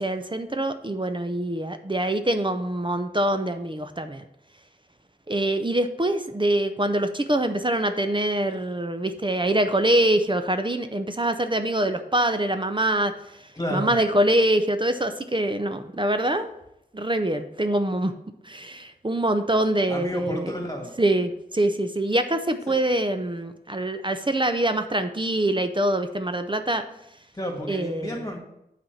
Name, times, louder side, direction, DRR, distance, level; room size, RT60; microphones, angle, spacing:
voice 1, 0.0-4.2 5.3-13.1 13.7-16.5 16.9-18.1 18.4-20.5 21.0-26.8 27.7-28.1, right 1 dB, 30° right, 8 dB, 0.6 m, -24 dB
voice 2, 13.5-14.0 19.9-20.9 22.7-22.8 27.3-28.4, equal, 20° left, 1 dB, 2.1 m, -31 dB
8.4 x 4.2 x 5.9 m, 0.81 s
wide cardioid pair, 50°, 17 cm